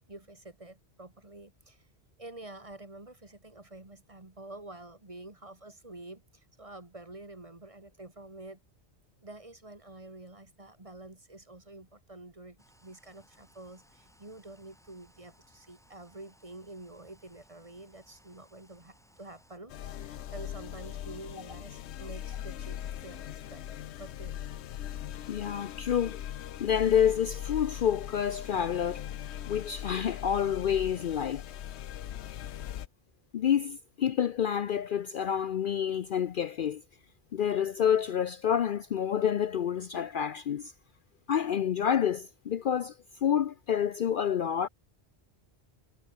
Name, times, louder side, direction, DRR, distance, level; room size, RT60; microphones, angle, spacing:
voice 1, 0.1-1.9 2.2-8.6 9.2-12.6 12.8-24.3, right 2 dB, 30° right, 2.3 m, -48 dB
sound 1, 12.6-19.6, equal, 5° left, 7.2 m, -64 dB
sound 2, 19.7-32.9, left 11 dB, 80° left, 1.0 m, -40 dB
voice 2, 25.3-26.2 26.6-29.1 29.5-31.4 33.3-36.8 37.3-40.7 41.3-42.9 43.2-44.7, left 9 dB, 60° left, 0.7 m, -28 dB
omnidirectional pair, 1.1 m